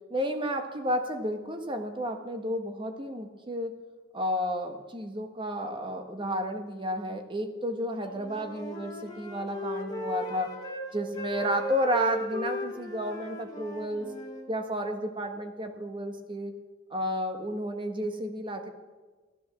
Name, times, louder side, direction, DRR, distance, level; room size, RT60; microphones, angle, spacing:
voice 1, 0.1-3.8 4.1-10.5 10.9-14.1 14.5-16.5 16.9-18.7, equal, 25° right, 6 dB, 1.5 m, -32 dB
Wind instrument woodwind instrument, 8.0-10.9 11.1-14.4, left 1 dB, 20° left, 2.4 m, -37 dB
14.0 x 13.0 x 7.2 m, 1.3 s
head